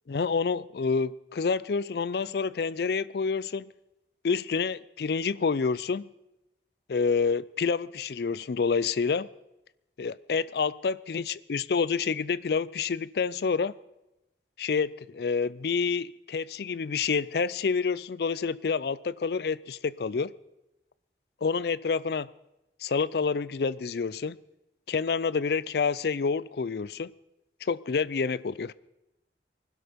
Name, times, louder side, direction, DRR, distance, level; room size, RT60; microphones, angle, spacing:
voice 1, 0.1-3.7 4.2-6.1 6.9-9.3 10.0-13.7 14.6-20.3 21.4-22.3 22.8-24.4 24.9-27.1 27.6-28.7, left 5 dB, 60° left, 0.4 m, -28 dB
20.0 x 12.0 x 5.2 m
head